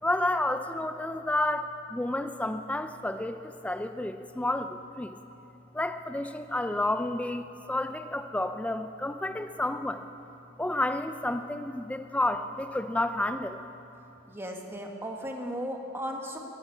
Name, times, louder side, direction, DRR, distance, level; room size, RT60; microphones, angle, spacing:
voice 1, 0.0-5.2 5.7-10.0 10.6-13.6, left 1 dB, 5° left, 8 dB, 0.4 m, -30 dB
voice 2, 14.3-16.4, equal, 10° right, 1 dB, 1.5 m, -36 dB
14.5 x 10.5 x 8.4 m, 2.9 s
head